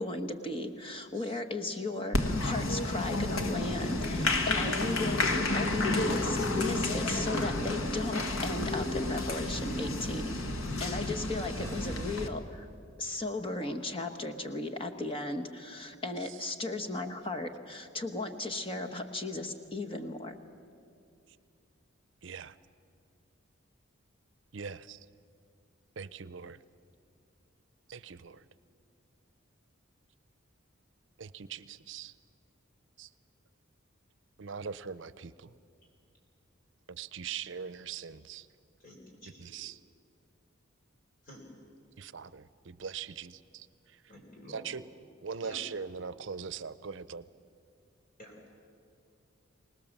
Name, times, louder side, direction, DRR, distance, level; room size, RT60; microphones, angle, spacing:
voice 1, 0.0-10.4 10.8-12.7 13.0-20.4, left 2 dB, 25° left, 6 dB, 1.2 m, -36 dB
Applause, 2.1-12.3, left 2 dB, 90° left, 1.6 m, -31 dB
voice 2, 11.6-12.1 22.2-22.6 24.5-25.0 26.0-26.6 27.9-28.4 31.2-32.1 33.0-33.1 34.4-35.5 36.9-38.5 39.4-39.8 42.0-43.7 44.5-44.8 45.2-47.2, right 6 dB, 65° right, 16 dB, 0.6 m, -41 dB
voice 3, 38.8-39.6 41.2-41.5 44.1-44.7 45.4-45.6 48.2-48.5, equal, 40° left, -1 dB, 4.0 m, -50 dB
25.5 x 19.0 x 7.3 m, 2.4 s
head